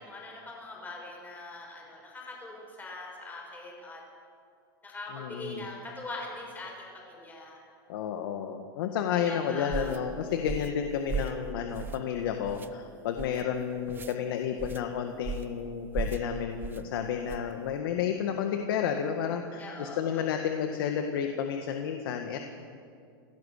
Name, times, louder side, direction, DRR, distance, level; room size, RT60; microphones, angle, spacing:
voice 1, 0.0-4.0 4.8-7.6 9.2-9.9 19.6-20.5, left 2 dB, 15° left, -2 dB, 6.7 m, -42 dB
voice 2, 5.1-5.7 7.9-22.4, left 8 dB, 70° left, 5 dB, 1.8 m, -31 dB
sound 1, 9.7-10.0 10.4-10.8 11.1-11.4 11.7-12.1 12.4-12.7 13.2-13.4 13.9-14.1 14.6-14.8 15.2-15.5 15.9-16.2 16.6-16.8 17.3-17.5, right 5 dB, 15° right, 0.8 m, -36 dB
27.5 x 17.0 x 6.7 m, 2.3 s
supercardioid pair, 135°, 12 cm